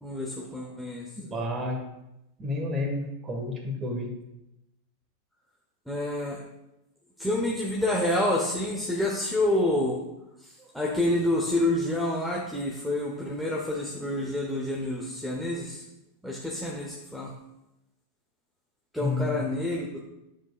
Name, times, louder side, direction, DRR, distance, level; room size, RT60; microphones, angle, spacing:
voice 1, 0.0-1.1 5.9-6.4 7.2-10.0 10.4-15.8 16.2-17.3 18.9-20.0, left 1 dB, ahead, -4 dB, 1.1 m, -28 dB
voice 2, 1.2-1.8 2.4-4.1 19.0-19.4, left 2 dB, 20° right, 3 dB, 1.5 m, -30 dB
9.8 x 7.3 x 2.4 m, 0.91 s
figure-of-eight pair, 90°, 0 cm